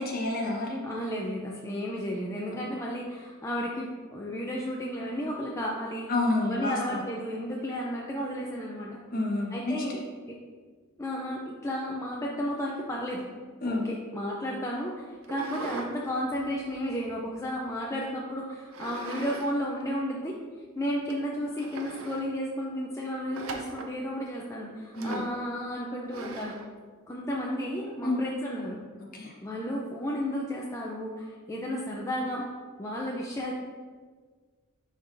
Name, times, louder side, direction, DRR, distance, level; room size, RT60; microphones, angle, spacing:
voice 1, 0.0-0.8 6.1-6.8 9.1-10.0 13.6-13.9 25.0-25.2 28.0-28.2 29.1-29.3, left 2 dB, 40° left, -1 dB, 1.0 m, -29 dB
voice 2, 0.8-6.1 6.4-9.0 9.5-10.0 10.3-10.4 11.0-13.3 13.7-20.3 20.8-26.6 27.1-28.8 29.4-32.4 32.8-33.5, equal, 15° left, -3 dB, 0.4 m, -33 dB
sound 1, 15.2-15.9 16.3-17.7 18.7-19.5 19.8-19.9 20.6-20.7 21.1-21.2 21.5-22.2 23.3-23.9 24.9-25.4 26.1-26.7, right 3 dB, 75° right, 0.6 m, -40 dB
10.0 x 3.7 x 2.6 m, 1.5 s
head